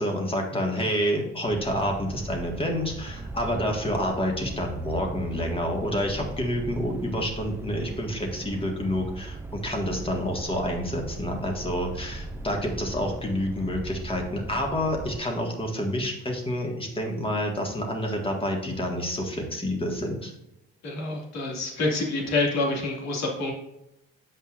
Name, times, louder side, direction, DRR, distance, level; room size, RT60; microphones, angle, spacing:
voice 1, 0.0-20.3, equal, 15° left, 1 dB, 1.9 m, -28 dB
sound 1, 1.5-15.2, right 2 dB, 10° right, 0.3 m, -38 dB
voice 2, 20.8-23.5, left 2 dB, 60° left, -2 dB, 2.4 m, -27 dB
8.1 x 5.4 x 2.6 m, 0.85 s
supercardioid pair, 85°, 31 cm